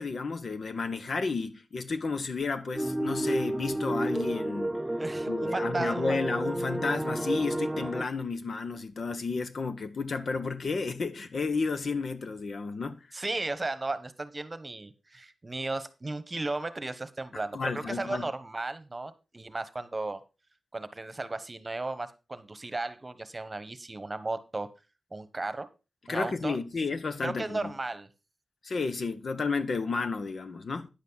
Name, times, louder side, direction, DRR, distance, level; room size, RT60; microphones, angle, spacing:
voice 1, 0.0-4.8 5.3-13.1 17.5-18.3 26.1-27.7 28.6-30.9, left 4 dB, 65° left, 1.0 m, -32 dB
sound 1, 2.7-8.1, right 1 dB, 10° right, 0.4 m, -31 dB
voice 2, 5.0-6.2 13.1-20.2 20.7-24.7 25.1-25.7 26.1-26.6 27.2-28.1, right 2 dB, 30° right, 1.1 m, -35 dB
10.0 x 8.3 x 4.0 m
cardioid pair, 65°, 0 cm